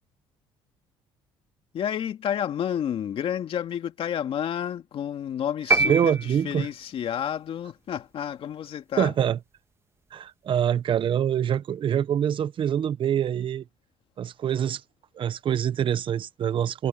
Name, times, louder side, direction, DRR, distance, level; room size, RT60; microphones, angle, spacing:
voice 1, 1.7-9.1, left 9 dB, 60° left, 2.2 m, -30 dB
sound 1, 5.7-6.9, right 3 dB, 25° right, 2.3 m, -25 dB
voice 2, 5.8-6.7 9.0-9.4 10.1-13.6 14.2-14.8 15.2-16.9, right 9 dB, 50° right, 1.0 m, -25 dB
cardioid pair, 90°, 11 cm